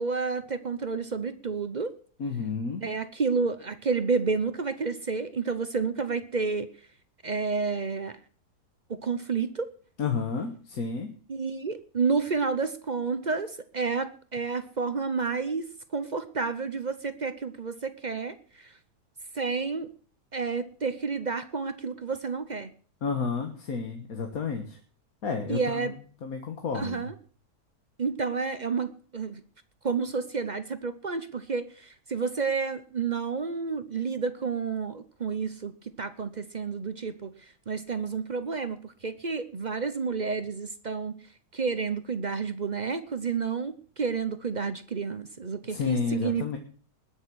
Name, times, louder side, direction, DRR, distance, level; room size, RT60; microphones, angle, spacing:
voice 1, 0.0-1.9 2.8-6.7 7.2-8.2 8.9-9.7 11.3-18.7 19.3-19.9 20.3-22.7 25.5-25.9 26.7-27.1 28.0-29.4 29.8-37.3 37.7-41.2 41.5-46.6, right 5 dB, 40° right, 11 dB, 0.7 m, -30 dB
voice 2, 2.2-2.8 10.0-11.1 23.0-24.8 25.2-27.1 45.7-46.6, left 5 dB, 60° left, 3 dB, 1.8 m, -31 dB
20.0 x 6.8 x 6.2 m, 0.43 s
omnidirectional pair, 1.7 m